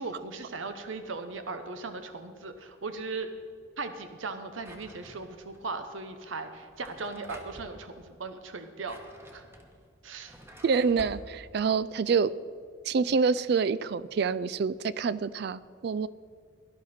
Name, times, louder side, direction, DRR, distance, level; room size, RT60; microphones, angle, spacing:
voice 1, 0.0-3.3 3.8-9.0 9.3-9.4 10.0-10.3, right 3 dB, 80° right, 8 dB, 0.9 m, -38 dB
Drawer open or close, 4.6-5.6 6.6-7.8 8.6-11.2, equal, 15° right, 1.2 m, -49 dB
voice 2, 10.6-12.3 12.9-16.1, right 5 dB, 55° right, 17 dB, 0.3 m, -27 dB
17.5 x 11.5 x 4.3 m, 2.1 s
head